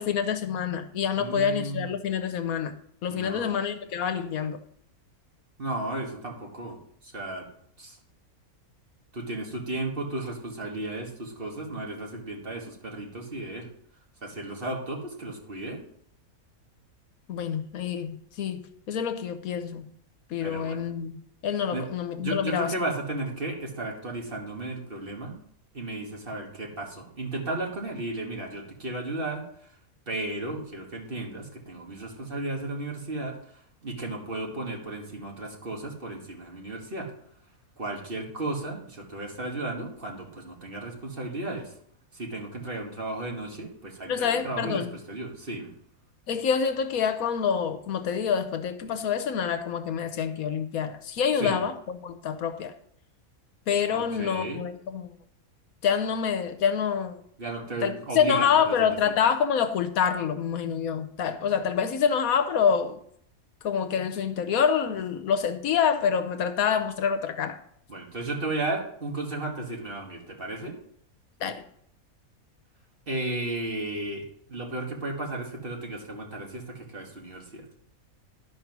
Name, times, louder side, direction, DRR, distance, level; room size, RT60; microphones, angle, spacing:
voice 1, 0.0-2.8 3.0-4.6 17.3-19.9 20.3-22.7 44.1-44.9 46.3-51.7 52.0-52.7 53.7-55.2 55.8-57.2 57.8-63.0 63.6-67.6 71.4-71.6, left 7 dB, 75° left, 1.2 m, -27 dB
voice 2, 1.2-1.9 3.1-3.6 5.6-6.8 7.0-7.5 7.8-8.0 9.1-13.7 14.2-15.8 20.4-20.8 21.7-21.9 22.2-25.4 25.7-29.7 30.1-33.4 33.8-37.1 37.8-41.7 42.1-45.7 51.4-51.6 53.9-54.6 57.4-59.1 67.9-70.8 73.1-77.7, right 2 dB, 40° right, 1.8 m, -34 dB
11.5 x 5.3 x 6.0 m
omnidirectional pair, 1.5 m